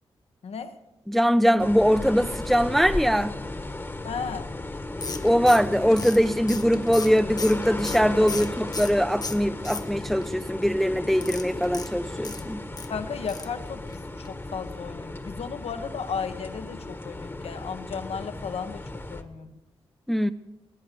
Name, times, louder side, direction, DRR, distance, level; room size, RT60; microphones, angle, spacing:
voice 1, 0.4-0.7 4.0-4.5 8.2-8.5 12.9-19.6, left 6 dB, 75° left, 1.2 m, -35 dB
voice 2, 1.1-3.3 5.2-12.6 20.1-20.3, equal, ahead, 0.4 m, -22 dB
sound 1, 1.6-19.2, left 2 dB, 20° left, 1.3 m, -35 dB
sound 2, 5.0-9.0 9.2-10.2 11.1-12.9 13.3-13.6 13.9-14.0 14.2-14.3, left 4 dB, 35° left, 0.9 m, -36 dB
19.5 x 9.8 x 6.8 m
cardioid pair, 70°, 11 cm